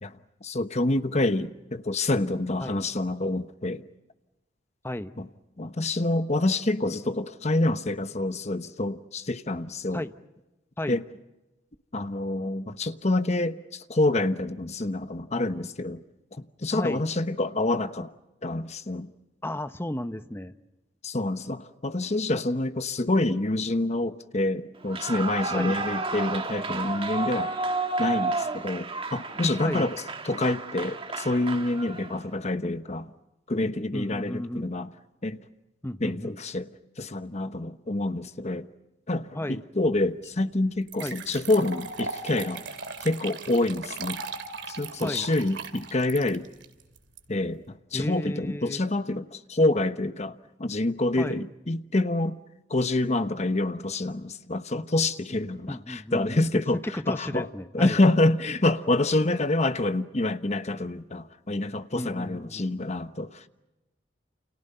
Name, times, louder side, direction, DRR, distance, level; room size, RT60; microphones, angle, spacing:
voice 1, 0.0-3.8 5.2-5.3 5.6-10.0 10.9-11.0 11.9-16.0 16.3-18.1 18.4-19.1 21.0-27.6 28.0-33.1 33.5-34.9 35.2-35.4 36.0-36.7 37.0-38.7 39.1-42.6 43.0-44.2 44.7-46.5 47.3-52.4 52.7-56.8 57.1-57.5 57.7-63.5, left 2 dB, 40° left, 1.1 m, -27 dB
voice 2, 16.7-17.1 19.4-20.5 25.5-25.8 29.6-29.9 33.9-34.7 35.8-36.4 39.3-39.6 41.0-41.2 45.0-45.3 47.9-48.8 51.2-51.5 55.7-56.6 56.9-58.0 61.9-62.7, left 1 dB, 15° left, 0.9 m, -33 dB
Clapping / Cheering / Applause, 24.8-32.2, right 3 dB, 30° right, 1.7 m, -31 dB
sound 1, 40.2-40.3 40.9-47.2, right 4 dB, 70° right, 2.5 m, -37 dB
29.5 x 28.5 x 5.6 m
head